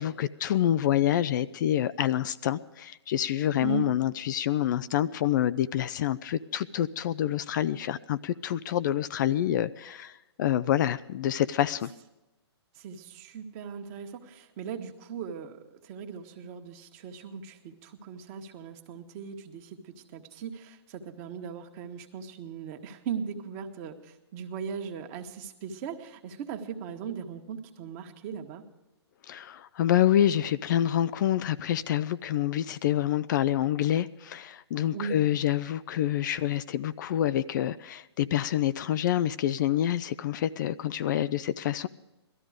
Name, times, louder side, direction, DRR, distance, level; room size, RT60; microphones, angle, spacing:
voice 1, 0.0-11.9 29.3-41.9, left 11 dB, 45° left, 0.4 m, -27 dB
voice 2, 3.6-3.9 12.7-28.6 34.9-35.2, right 7 dB, 35° right, 1.6 m, -38 dB
18.0 x 13.5 x 5.0 m
hypercardioid pair, 135°, 14 cm